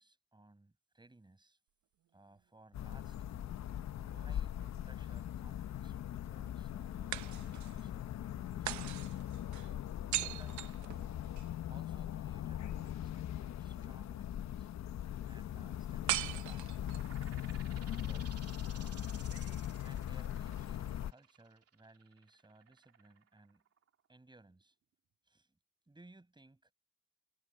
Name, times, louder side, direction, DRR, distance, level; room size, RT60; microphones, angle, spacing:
voice 1, 0.0-1.6 2.1-3.5 4.1-8.9 10.1-10.9 11.7-14.7 15.3-16.9 17.8-18.4 19.8-23.6 24.1-24.7 25.3-25.6 25.9-26.7, right 2 dB, 15° right, 8.0 m, -61 dB
sound 1, 2.7-21.1, left 11 dB, 65° left, 1.2 m, -40 dB
sound 2, 4.0-5.1 7.1-7.9 8.7-11.5 16.1-17.2, right 14 dB, 70° right, 0.8 m, -40 dB
sound 3, 16.8-24.1, right 8 dB, 50° right, 2.4 m, -57 dB
cardioid pair, 90°, 30 cm